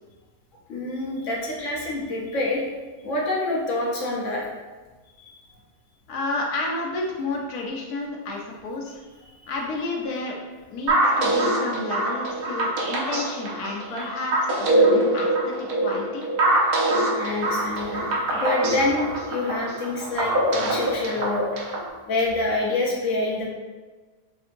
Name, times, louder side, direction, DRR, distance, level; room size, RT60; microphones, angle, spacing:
voice 1, 0.7-2.6 3.0-4.5 5.2-5.4 9.3-9.5 13.9-14.1 17.2-21.8 22.1-23.5, left 2 dB, 60° left, -3 dB, 1.1 m, -27 dB
voice 2, 6.1-9.0 9.5-10.4 10.7-16.2, left 2 dB, 75° left, -1 dB, 1.3 m, -31 dB
sound 1, 10.9-21.9, right 1 dB, 75° right, 1.3 m, -23 dB
6.1 x 2.7 x 2.6 m, 1.3 s
omnidirectional pair, 1.6 m